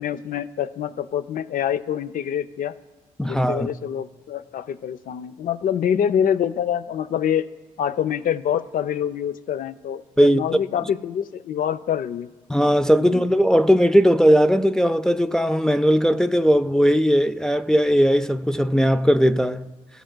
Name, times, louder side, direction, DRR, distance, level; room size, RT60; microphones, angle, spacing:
voice 1, 0.0-2.7 3.2-7.5 7.8-12.3 13.0-13.2, left 9 dB, 70° left, 0.4 m, -26 dB
voice 2, 3.2-3.7 10.2-10.4 12.5-19.7, equal, 5° left, 0.3 m, -18 dB
15.0 x 5.0 x 2.2 m
supercardioid pair, 45°, 15 cm